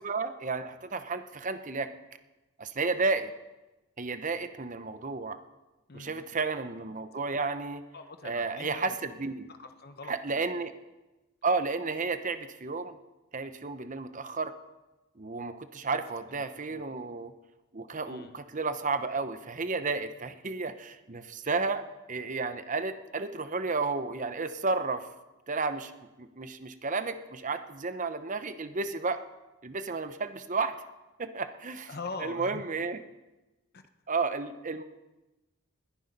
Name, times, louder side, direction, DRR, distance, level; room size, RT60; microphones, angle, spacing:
voice 1, 0.0-1.9 2.6-3.3 4.0-5.4 5.9-7.8 8.2-9.5 10.1-10.7 11.4-13.0 13.3-14.5 15.2-17.3 17.7-25.1 25.5-25.9 26.2-29.2 29.6-30.7 31.2-31.9 32.2-33.0 34.1-34.8, right 4 dB, 35° right, 10 dB, 0.8 m, -32 dB
voice 2, 5.9-6.3 7.9-9.0 9.5-10.4 15.9-16.0 16.3-16.8 18.1-18.4 31.9-32.6 33.7-33.8, left 3 dB, 45° left, 7 dB, 0.9 m, -43 dB
20.5 x 10.0 x 5.3 m, 1.1 s
head